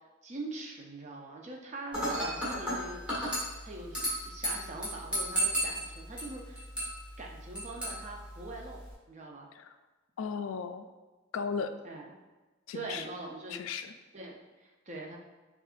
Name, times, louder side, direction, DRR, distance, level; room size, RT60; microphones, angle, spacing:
voice 1, 0.2-6.7 7.2-8.8 9.1-9.5 11.8-12.0 12.7-13.6 14.1-15.2, right 2 dB, 35° right, 0 dB, 0.6 m, -43 dB
Dishes pots and pans / Glass, 1.9-8.9, right 1 dB, 5° right, 1.4 m, -35 dB
voice 2, 10.2-10.8 11.3-11.7 12.7-13.1 13.5-13.9, left 6 dB, 85° left, 9 dB, 0.3 m, -36 dB
6.5 x 2.5 x 2.5 m, 1.2 s
head